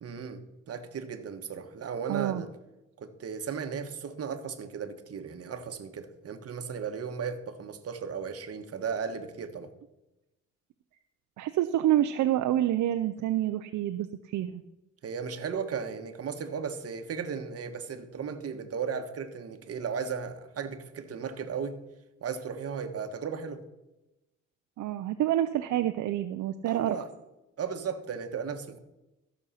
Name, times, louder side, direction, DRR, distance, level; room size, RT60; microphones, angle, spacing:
voice 1, 0.0-2.5 3.0-9.7 15.0-21.8 22.2-23.6 26.6-27.1 27.6-28.8, right 6 dB, 55° right, 1.4 m, -36 dB
voice 2, 2.1-2.4 11.4-14.6 24.8-27.0, right 12 dB, 70° right, 0.6 m, -27 dB
14.0 x 6.5 x 5.7 m
cardioid pair, 90°, 30 cm